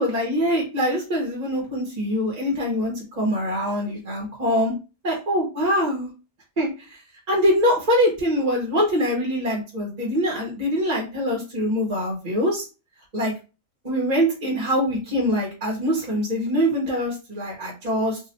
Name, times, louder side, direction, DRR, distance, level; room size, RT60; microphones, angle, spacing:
voice 1, 0.0-4.7 5.0-6.1 6.6-7.0 7.3-12.6 13.1-13.3 13.8-18.2, equal, 35° right, -2 dB, 1.0 m, -23 dB
2.8 x 2.4 x 4.0 m, 0.31 s
omnidirectional pair, 1.4 m